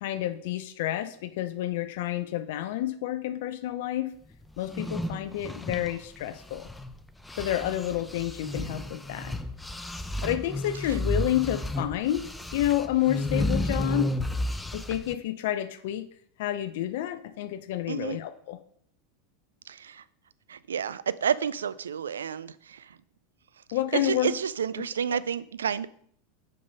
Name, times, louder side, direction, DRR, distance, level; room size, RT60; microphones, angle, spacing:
voice 1, 0.0-4.1 4.6-6.7 7.4-9.4 10.2-14.1 14.7-16.1 16.4-18.6 23.7-24.3 25.1-25.2, left 13 dB, 65° left, 11 dB, 0.5 m, -29 dB
sound 1, 4.6-6.9 7.3-15.1, left 1 dB, 10° left, 0.5 m, -32 dB
voice 2, 17.9-18.2 19.7-20.0 20.5-23.0 23.9-25.9, right 7 dB, 85° right, 17 dB, 0.3 m, -30 dB
5.4 x 5.4 x 5.4 m, 0.63 s
hypercardioid pair, 95°, 0 cm